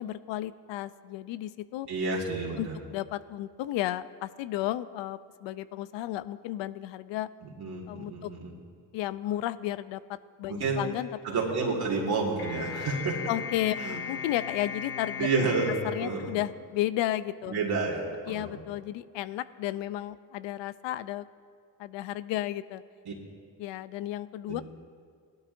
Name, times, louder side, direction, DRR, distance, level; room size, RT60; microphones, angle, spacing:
voice 1, 0.0-1.9 2.6-7.3 7.9-8.3 8.9-11.1 13.3-15.3 15.9-17.6 18.3-21.3 21.8-22.8 23.6-24.6, left 14 dB, 80° left, 16 dB, 0.6 m, -33 dB
voice 2, 1.9-2.8 7.6-8.5 10.5-10.9 11.2-13.2 13.8-14.0 15.2-15.8 16.0-16.3 17.5-18.1 18.3-18.5 23.1-23.2 24.5-24.6, right 4 dB, 60° right, -4 dB, 2.0 m, -29 dB
sound 1, 12.4-16.9, left 7 dB, 60° left, 1.3 m, -38 dB
18.5 x 12.0 x 2.6 m, 2.1 s
cardioid pair, 100°, 43 cm